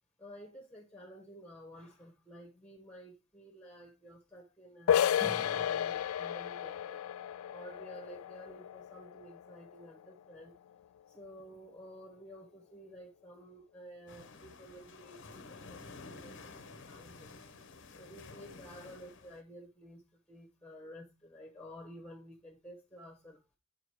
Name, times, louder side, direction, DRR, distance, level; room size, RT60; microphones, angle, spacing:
voice 1, 0.2-7.0 7.5-10.5 11.1-17.3 18.0-23.4, equal, 5° left, 1.2 m, -51 dB
sound 1, 4.9-10.4, left 9 dB, 75° left, 0.3 m, -33 dB
sound 2, 14.1-19.4, left 3 dB, 55° left, 0.8 m, -51 dB
5.4 x 5.0 x 4.7 m
head